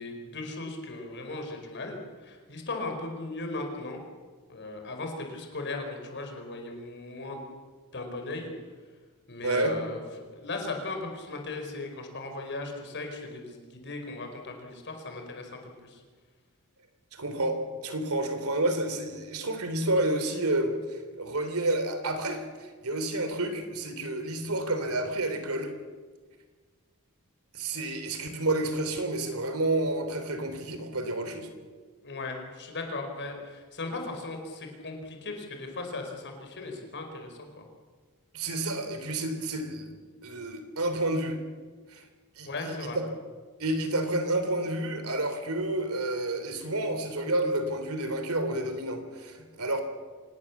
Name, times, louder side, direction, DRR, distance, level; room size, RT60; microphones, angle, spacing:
voice 1, 0.0-4.1 4.5-7.4 7.9-8.5 9.3-10.0 10.3-16.0 32.0-37.7 42.5-43.0, left 2 dB, 55° left, 4 dB, 4.9 m, -37 dB
voice 2, 9.4-9.8 17.1-25.7 27.5-31.5 38.3-39.9 40.2-41.4 41.9-42.0 42.4-43.0 43.6-49.8, right 2 dB, 70° right, 8 dB, 3.5 m, -30 dB
26.0 x 19.0 x 7.3 m, 1.5 s
head